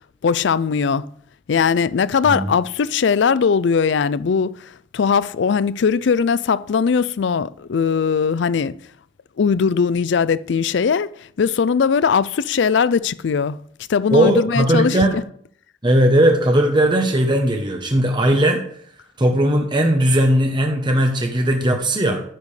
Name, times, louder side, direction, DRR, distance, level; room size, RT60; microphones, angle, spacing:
voice 1, 0.2-1.0 1.5-8.8 9.4-13.6 13.9-15.2, left 6 dB, 65° left, 0.4 m, -19 dB
voice 2, 14.1-15.2 15.8-18.6 19.2-22.2, right 1 dB, 25° right, 0.9 m, -17 dB
10.5 x 10.0 x 3.3 m
head